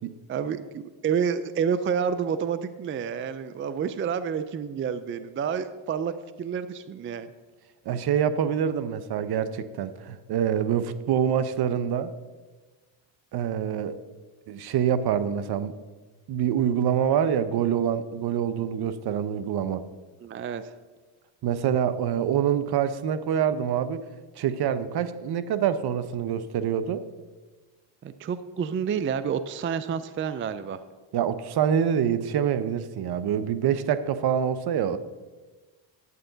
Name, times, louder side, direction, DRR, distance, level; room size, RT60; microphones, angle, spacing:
voice 1, 0.3-7.3 20.2-20.7 28.0-30.8, right 7 dB, 30° right, 13 dB, 0.4 m, -29 dB
voice 2, 7.9-12.1 13.3-14.0 14.5-15.7 16.3-19.8 21.4-24.0 24.4-27.0 31.1-35.0, right 9 dB, 55° right, 13 dB, 0.8 m, -26 dB
11.0 x 8.8 x 3.9 m, 1.3 s
cardioid pair, 90°, 46 cm